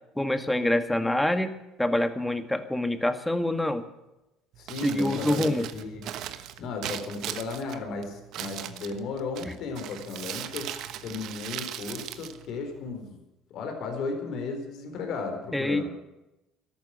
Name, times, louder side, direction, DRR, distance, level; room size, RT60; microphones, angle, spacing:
voice 1, 0.2-1.5 1.8-3.8 4.8-5.7 9.4-9.5 15.5-15.9, left 1 dB, 5° left, 9 dB, 1.8 m, -26 dB
Crumpling crinkling, 4.5-13.1, right 11 dB, 65° right, 1.2 m, -39 dB
voice 2, 4.6-6.1 6.6-10.7 11.0-13.2 13.5-15.9, left 4 dB, 60° left, 4 dB, 4.1 m, -35 dB
13.5 x 12.0 x 8.9 m, 0.93 s
hypercardioid pair, 65°, 0 cm